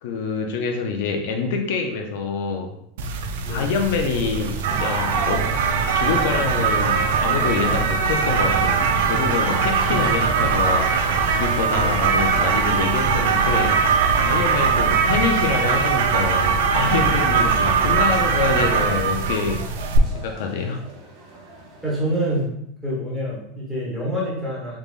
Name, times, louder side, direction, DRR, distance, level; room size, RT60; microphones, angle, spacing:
voice 1, 0.0-2.8 3.5-5.5 5.9-8.8 9.1-19.6 20.1-20.8, left 5 dB, 70° left, 3 dB, 0.5 m, -26 dB
sound 1, 3.0-20.0, right 5 dB, 80° right, 0.4 m, -21 dB
sound 2, 4.2-22.5, right 2 dB, 45° right, 0.8 m, -38 dB
voice 2, 11.7-12.1 17.4-17.5 21.8-22.5 22.8-24.8, equal, ahead, -7 dB, 1.2 m, -27 dB
3.5 x 3.3 x 2.4 m, 0.73 s
supercardioid pair, 160°, 0 cm